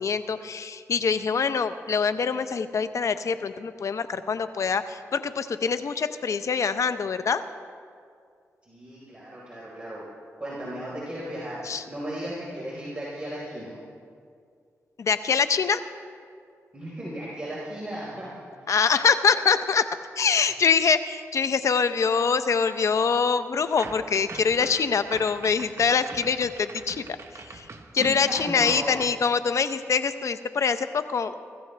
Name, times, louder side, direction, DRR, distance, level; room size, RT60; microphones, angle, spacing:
voice 1, 0.0-7.4 11.7-11.8 15.0-15.8 18.7-19.9 20.2-27.0 27.5-27.6 27.9-31.3, left 5 dB, 60° left, 11 dB, 0.7 m, -24 dB
voice 2, 8.6-10.0 10.4-13.7 16.7-18.3 18.6-18.7 28.0-28.9, right 1 dB, 20° right, -7 dB, 4.5 m, -35 dB
sound 1, 23.6-29.1, right 4 dB, 55° right, 1.2 m, -43 dB
24.0 x 14.5 x 3.4 m, 2.2 s
cardioid pair, 65°, 6 cm